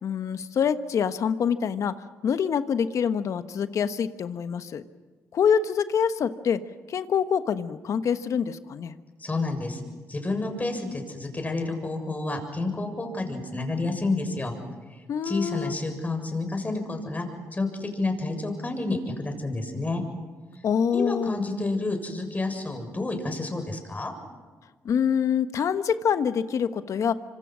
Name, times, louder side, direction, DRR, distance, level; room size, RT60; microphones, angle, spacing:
voice 1, 0.0-1.9 2.2-4.8 5.3-6.6 6.9-8.9 15.1-15.7 20.6-21.3 24.8-27.1, left 7 dB, 65° left, 11 dB, 1.3 m, -25 dB
voice 2, 9.2-9.8 10.1-14.5 15.2-17.3 17.5-20.0 20.9-24.1, left 2 dB, 30° left, 4 dB, 7.2 m, -29 dB
26.0 x 25.5 x 6.3 m, 1.4 s
supercardioid pair, 55°, 6 cm